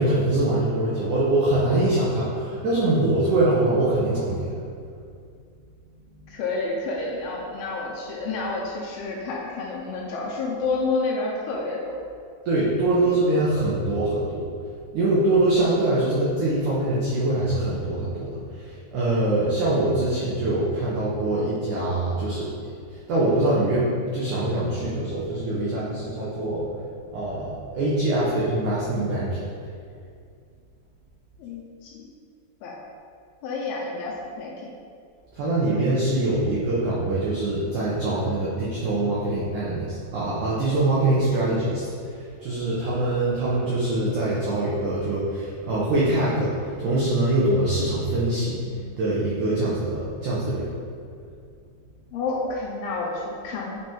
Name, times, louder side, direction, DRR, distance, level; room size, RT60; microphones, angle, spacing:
voice 1, 0.0-4.5 12.5-14.5 14.9-22.5 22.9-26.7 27.1-29.5 35.4-50.7, right 2 dB, 85° right, -7 dB, 1.7 m, -23 dB
voice 2, 6.3-12.0 13.0-13.2 31.4-32.0 32.6-32.7 33.4-34.7 52.1-53.8, left 3 dB, 80° left, -3 dB, 2.4 m, -29 dB
8.1 x 3.6 x 4.4 m, 2.3 s
omnidirectional pair, 4.9 m